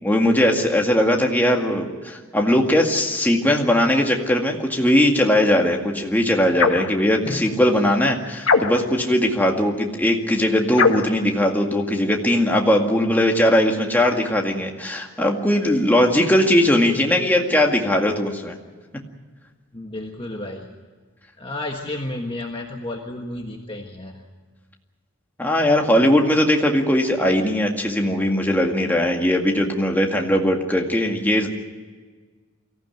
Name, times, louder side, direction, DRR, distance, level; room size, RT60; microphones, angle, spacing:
voice 1, 0.0-18.6 25.4-31.5, left 1 dB, 10° left, 1 dB, 2.0 m, -19 dB
sound 1, 6.5-6.9 8.4-9.0 10.7-11.2, left 4 dB, 75° left, 1.7 m, -20 dB
voice 2, 7.2-8.0 19.7-20.7 21.4-24.3, left 1 dB, 25° left, 2 dB, 1.4 m, -32 dB
23.5 x 15.5 x 9.3 m, 1.4 s
head